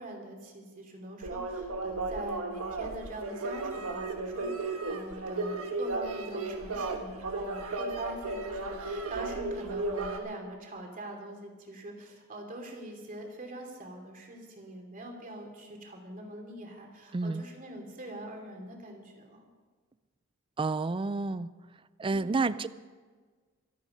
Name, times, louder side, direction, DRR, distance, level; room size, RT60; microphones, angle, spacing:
voice 1, 0.0-19.5 22.1-22.6, right 1 dB, 40° right, 2 dB, 2.9 m, -43 dB
sound 1, 1.2-10.2, right 2 dB, 80° right, 1.5 m, -34 dB
voice 2, 17.1-17.4 20.6-21.5 22.0-22.7, right 3 dB, 25° right, 16 dB, 0.4 m, -29 dB
24.5 x 8.5 x 5.4 m, 1.5 s
head